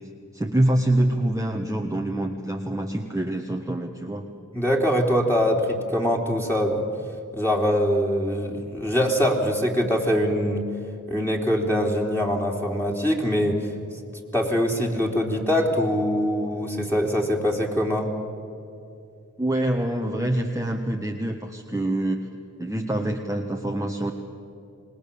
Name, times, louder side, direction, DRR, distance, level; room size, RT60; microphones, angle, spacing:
voice 1, 0.3-4.3 19.4-22.2 22.6-24.1, right 1 dB, 10° right, 2 dB, 1.5 m, -25 dB
voice 2, 4.5-6.8 7.3-10.6 11.1-13.7 14.3-18.1, equal, 5° left, -1 dB, 3.5 m, -23 dB
26.5 x 20.0 x 7.1 m, 2.7 s
wide cardioid pair, 50°, 32 cm